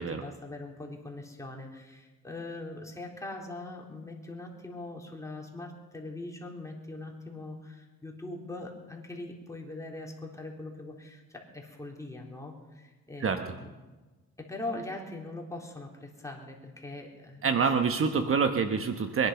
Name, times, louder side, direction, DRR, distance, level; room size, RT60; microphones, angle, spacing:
voice 1, 0.0-13.7 14.4-17.7 18.1-18.3, left 2 dB, 10° left, -1 dB, 3.8 m, -41 dB
voice 2, 17.4-19.3, right 5 dB, 45° right, 7 dB, 1.2 m, -26 dB
23.0 x 11.0 x 5.8 m, 1.2 s
cardioid pair, 90°, 30 cm